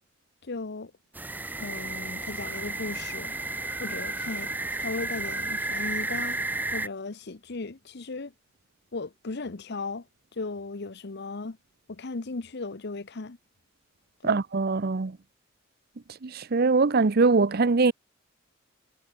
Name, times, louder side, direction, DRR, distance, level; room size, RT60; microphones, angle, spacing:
voice 1, 0.4-0.9 1.6-3.3 3.8-4.5 4.8-6.4 6.7-8.3 8.9-10.1 10.4-11.6 11.9-13.4 14.2-14.4, left 3 dB, 55° left, 0.9 m, -36 dB
sound 1, 1.1-6.9, right 2 dB, 10° right, 0.5 m, -32 dB
voice 2, 14.2-15.2 16.2-17.9, right 4 dB, 50° right, 0.7 m, -22 dB
head